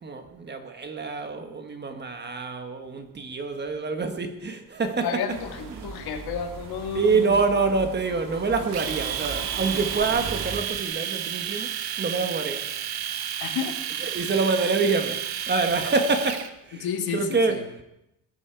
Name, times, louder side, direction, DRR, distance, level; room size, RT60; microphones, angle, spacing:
voice 1, 0.0-5.2 5.8-5.9 6.9-11.7 12.0-12.6 14.0-17.8, right 4 dB, 30° right, 6 dB, 1.4 m, -26 dB
voice 2, 5.0-7.4 13.4-13.8 16.7-17.6, left 7 dB, 80° left, 5 dB, 2.0 m, -31 dB
sound 1, 5.3-10.6, right 5 dB, 60° right, 2.1 m, -38 dB
Domestic sounds home sounds, 8.7-16.5, right 9 dB, 90° right, 1.3 m, -31 dB
20.5 x 11.5 x 4.7 m, 0.86 s
cardioid pair, 170°, 37 cm